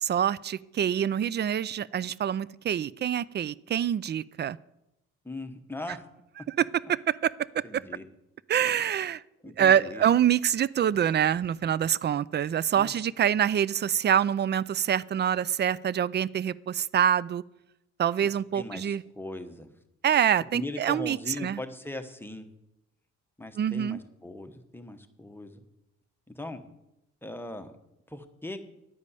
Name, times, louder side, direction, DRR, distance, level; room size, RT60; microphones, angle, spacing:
voice 1, 0.0-4.6 6.6-7.8 8.5-9.2 9.6-17.4 18.0-19.0 20.0-21.6 23.6-24.0, right 9 dB, 35° right, 21 dB, 0.4 m, -26 dB
voice 2, 5.2-6.1 7.6-8.0 9.4-10.1 12.8-13.0 18.2-19.7 20.5-22.5 23.4-25.6 26.3-26.6 27.2-27.7 28.1-28.6, left 2 dB, 5° left, 6 dB, 1.1 m, -39 dB
11.0 x 5.2 x 8.3 m, 0.87 s
cardioid pair, 90°, 30 cm